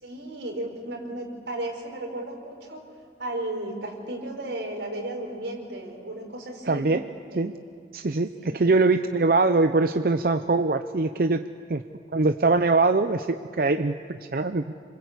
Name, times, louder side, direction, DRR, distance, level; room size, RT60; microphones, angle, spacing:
voice 1, 0.0-2.8 3.2-6.9 8.4-8.6, right 1 dB, 85° right, 2 dB, 4.8 m, -34 dB
voice 2, 6.7-7.0 7.3-7.5 7.9-11.4 11.7-11.8 12.1-14.6, right 3 dB, 55° right, 9 dB, 0.6 m, -22 dB
27.5 x 25.5 x 8.2 m, 2.3 s
head